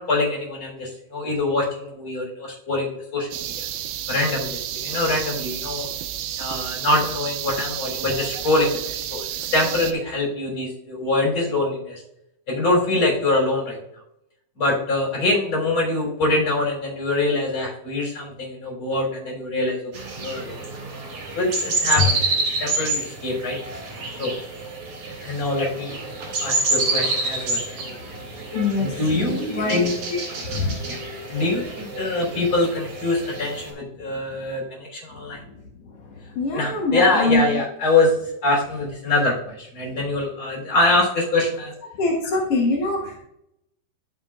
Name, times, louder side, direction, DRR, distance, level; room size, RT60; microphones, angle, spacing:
voice 1, 0.0-3.5 4.1-5.9 6.4-9.2 9.5-12.0 12.5-13.8 14.6-19.8 20.2-20.6 21.4-23.6 24.2-24.3 25.2-26.0 26.4-27.8 28.8-29.9 30.4-31.0 31.3-35.4 36.5-38.1 38.4-41.7, left 2 dB, 35° left, -3 dB, 4.1 m, -24 dB
sound 1, 3.3-9.9, right 11 dB, 80° right, 2.4 m, -31 dB
sound 2, 19.9-33.7, right 3 dB, 55° right, 3.7 m, -28 dB
voice 2, 27.8-28.2 28.5-29.8 30.7-31.4 36.3-37.5 42.0-43.2, left 2 dB, 65° left, -1 dB, 1.5 m, -24 dB
12.5 x 6.6 x 2.5 m, 0.80 s
omnidirectional pair, 4.3 m